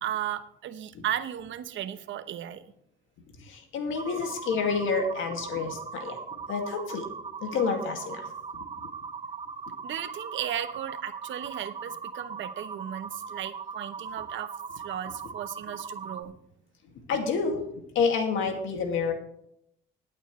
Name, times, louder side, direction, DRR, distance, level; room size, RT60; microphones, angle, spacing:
voice 1, 0.0-2.6 9.8-14.5 14.8-16.3, right 11 dB, 70° right, 12 dB, 0.9 m, -35 dB
voice 2, 3.4-6.2 6.5-7.0 7.4-8.2 17.1-19.1, left 5 dB, 85° left, 4 dB, 2.2 m, -29 dB
sound 1, 4.0-16.2, right 5 dB, 30° right, 0.7 m, -39 dB
20.5 x 9.0 x 3.2 m, 0.75 s
cardioid pair, 90°, 20 cm